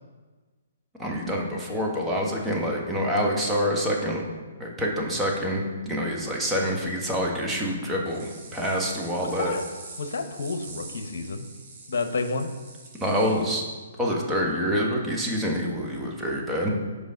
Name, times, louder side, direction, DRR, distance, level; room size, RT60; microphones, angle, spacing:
voice 1, 1.0-4.2 4.6-9.5 13.0-13.6 14.0-16.7, equal, 10° right, -2 dB, 1.4 m, -26 dB
sound 1, 8.0-13.5, right 3 dB, 45° right, 2.1 m, -45 dB
voice 2, 9.2-9.6 10.0-11.4 11.9-12.5, left 3 dB, 70° left, 8 dB, 0.9 m, -30 dB
7.3 x 5.0 x 5.1 m, 1.3 s
hypercardioid pair, 135°, 0 cm